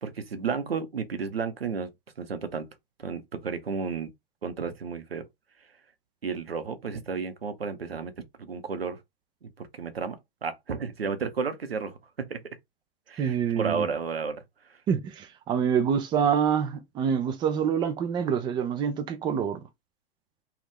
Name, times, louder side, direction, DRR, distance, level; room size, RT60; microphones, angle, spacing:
voice 1, 0.0-1.9 2.2-2.7 3.0-4.1 4.4-5.2 6.2-9.0 9.4-12.6 13.1-14.4, right 5 dB, 80° right, 0.7 m, -32 dB
voice 2, 13.2-13.9 14.9-19.6, right 7 dB, 15° right, 0.4 m, -26 dB
2.7 x 2.3 x 3.5 m
figure-of-eight pair, 105°, 29 cm